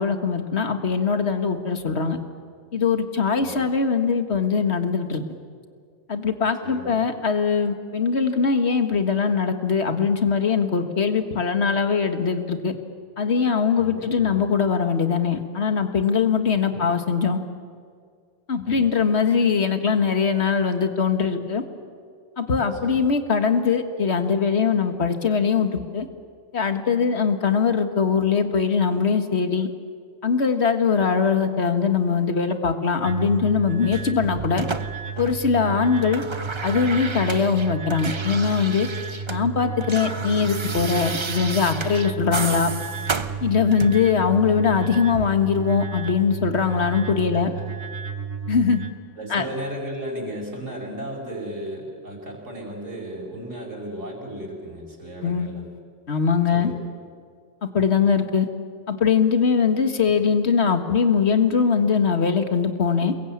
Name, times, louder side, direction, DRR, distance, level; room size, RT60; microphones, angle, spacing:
voice 1, 0.0-2.2 2.7-5.2 6.1-12.7 13.2-17.4 18.5-21.6 22.4-26.1 26.5-29.7 30.2-34.7 35.2-36.2 36.6-38.9 39.3-42.7 43.4-47.5 48.5-48.8 49.3-49.4 55.2-55.5 56.1-56.7 57.6-58.5 58.9-63.1, left 6 dB, 55° left, 7 dB, 2.0 m, -21 dB
voice 2, 3.4-3.7 6.6-7.0 13.7-14.4 16.7-16.8 18.7-18.9 22.6-23.0 47.3-47.6 49.2-55.7 56.5-56.8 59.9-60.0, right 1 dB, 75° right, 0 dB, 5.4 m, -35 dB
sound 1, 33.0-48.9, right 6 dB, 50° right, 1.8 m, -33 dB
sound 2, 33.9-35.6 35.9-39.4 39.7-44.1 45.1-45.3, right 4 dB, 25° right, 0.7 m, -32 dB
28.5 x 22.0 x 8.7 m, 2.1 s
omnidirectional pair, 1.3 m